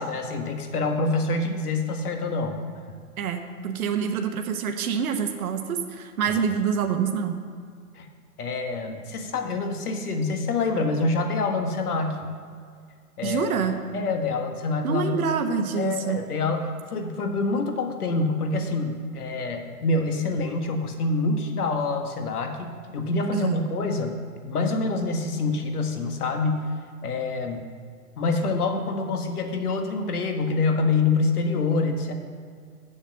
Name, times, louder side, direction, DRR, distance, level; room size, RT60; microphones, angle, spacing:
voice 1, 0.0-2.6 7.9-8.1 8.4-12.3 13.2-13.5 13.9-15.3 15.7-24.1 24.4-26.7 27.0-27.6 28.2-32.1, left 3 dB, 80° left, 5 dB, 1.5 m, -26 dB
voice 2, 3.2-7.4 13.2-13.8 14.8-16.2 23.3-23.7, right 7 dB, 70° right, 5 dB, 1.0 m, -26 dB
7.2 x 6.8 x 7.3 m, 2.1 s
hypercardioid pair, 150°, 44 cm